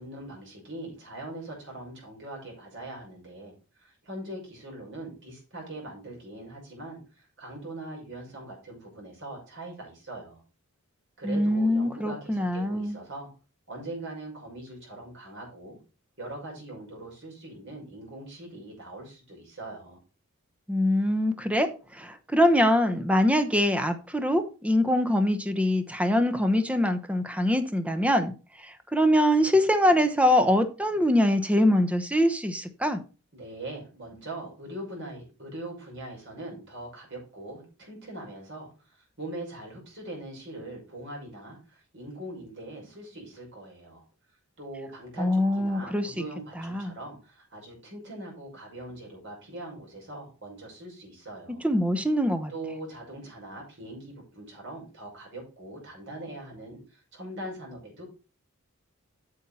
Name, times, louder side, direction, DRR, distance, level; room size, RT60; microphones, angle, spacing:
voice 1, 0.0-10.4 11.2-13.3 13.7-15.8 16.2-20.0 33.3-44.0 44.6-51.6 52.5-58.0, right 1 dB, 55° right, 5.9 m, -41 dB
voice 2, 11.2-13.0 20.7-21.7 22.0-28.3 28.9-33.0 45.2-46.1 46.7-46.9 51.6-52.5, left 1 dB, 5° right, 0.9 m, -23 dB
8.7 x 7.2 x 4.2 m
head